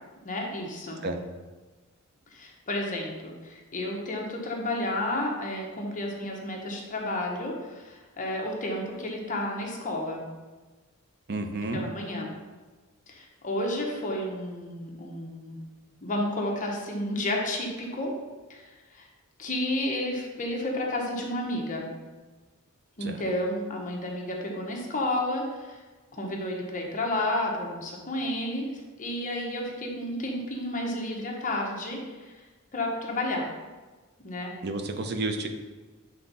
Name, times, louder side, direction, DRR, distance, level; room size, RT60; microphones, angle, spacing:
voice 1, 0.2-1.0 2.3-10.3 11.7-12.3 13.1-15.6 16.0-18.1 18.5-18.6 18.9-19.1 19.4-21.9 23.0-25.8 26.1-28.7 29.0-32.3 32.7-33.5 34.2-34.5, left 1 dB, 40° left, 0 dB, 1.0 m, -31 dB
voice 2, 11.3-11.8 23.0-23.2 34.6-35.5, right 2 dB, 50° right, 6 dB, 0.6 m, -31 dB
7.5 x 3.6 x 4.1 m, 1.3 s
head